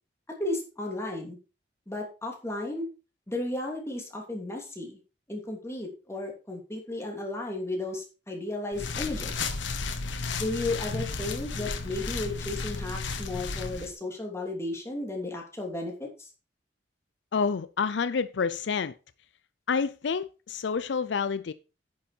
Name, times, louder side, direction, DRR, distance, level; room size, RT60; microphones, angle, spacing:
voice 1, 0.4-1.4 1.9-2.9 3.3-5.0 5.3-9.5 10.3-16.3, left 2 dB, 15° left, 2.9 m, -34 dB
sound 1, 8.7-13.9, left 4 dB, 90° left, 1.4 m, -33 dB
voice 2, 17.3-18.9 19.7-21.5, left 5 dB, 70° left, 0.5 m, -28 dB
10.5 x 6.8 x 4.5 m
head